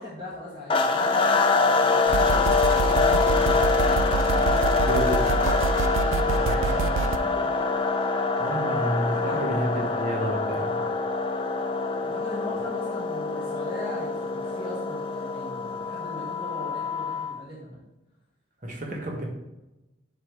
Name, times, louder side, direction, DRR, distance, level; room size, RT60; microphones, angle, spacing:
voice 1, 0.0-3.5 6.2-7.5 8.6-8.7 9.0-9.4 12.0-17.8, left 1 dB, 20° right, -8 dB, 1.7 m, -39 dB
sound 1, 0.7-17.4, left 4 dB, 25° left, 0.5 m, -25 dB
sound 2, 2.1-7.2, right 4 dB, 90° right, 0.4 m, -27 dB
voice 2, 4.7-5.3 8.4-10.7 18.6-19.2, right 1 dB, 40° right, -1 dB, 1.6 m, -30 dB
7.3 x 5.4 x 3.3 m, 0.98 s
head